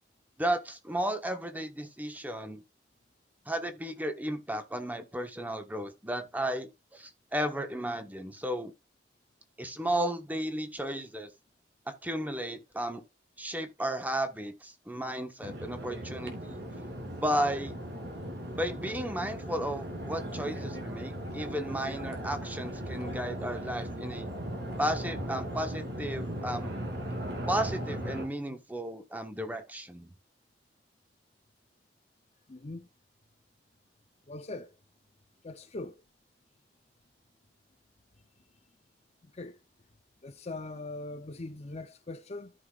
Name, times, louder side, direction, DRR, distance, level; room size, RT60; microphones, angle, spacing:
voice 1, 0.4-2.6 3.5-8.7 9.6-11.3 11.9-13.0 13.4-16.6 17.1-17.7 18.6-24.3 24.8-26.8 27.5-30.1, right 1 dB, 10° right, 1.2 m, -34 dB
sound 1, 15.4-28.3, right 1 dB, 70° right, 2.9 m, -38 dB
voice 2, 32.5-32.9 34.3-34.7 35.4-36.0 39.3-39.6 40.2-42.5, left 2 dB, 40° left, 0.6 m, -41 dB
13.5 x 5.7 x 2.4 m
head